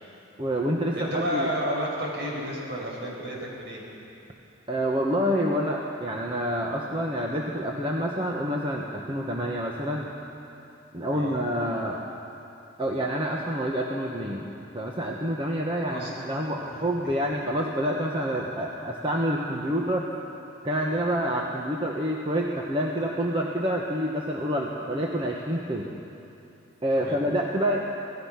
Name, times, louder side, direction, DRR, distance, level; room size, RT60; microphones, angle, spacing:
voice 1, 0.4-1.5 4.7-10.1 10.9-12.0 12.8-14.4 14.7-20.1 20.6-25.9 26.8-27.8, equal, 25° right, -1 dB, 1.3 m, -27 dB
voice 2, 0.9-3.8 11.1-11.4 15.9-16.2 16.7-16.8 20.9-21.1 26.9-27.2, equal, 60° right, -3 dB, 6.4 m, -31 dB
26.5 x 17.5 x 5.9 m, 2.9 s
head